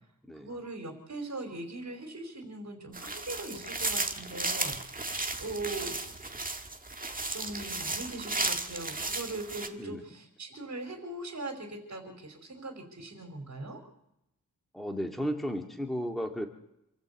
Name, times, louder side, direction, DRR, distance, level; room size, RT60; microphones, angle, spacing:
voice 1, 0.3-4.8 5.4-6.0 7.3-13.8, right 2 dB, 50° right, 5 dB, 4.9 m, -40 dB
sound 1, 2.9-9.7, right 2 dB, 25° right, 1.8 m, -34 dB
voice 2, 14.7-16.5, equal, ahead, 3 dB, 2.3 m, -34 dB
27.5 x 14.5 x 8.4 m, 0.81 s
wide cardioid pair, 140°, 35 cm